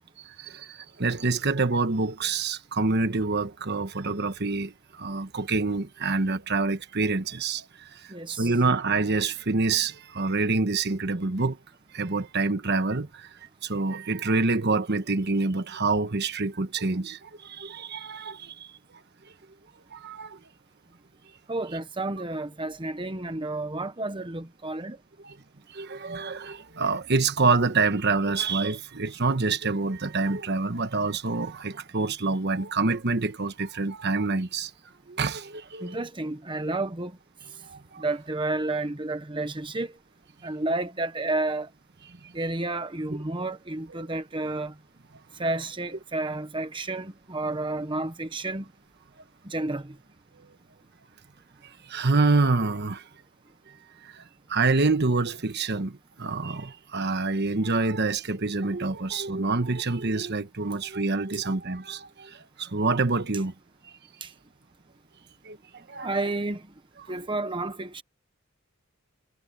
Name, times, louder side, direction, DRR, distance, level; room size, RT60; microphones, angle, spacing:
voice 1, 0.4-7.6 7.9-8.0 8.3-11.6 11.9-13.3 13.6-18.5 19.9-20.4 25.2-25.4 25.7-34.7 35.1-36.0 37.7-38.0 51.9-53.0 54.0-54.2 54.5-63.5 65.4-65.6 65.9-66.1, right 3 dB, 55° right, 1.2 m, -26 dB
voice 2, 8.1-8.5 21.5-25.0 35.8-37.1 38.0-39.9 40.4-41.7 42.3-44.7 45.4-48.6 49.4-49.9 64.2-64.3 66.0-66.6 67.1-68.0, right 2 dB, 25° right, 1.0 m, -31 dB
head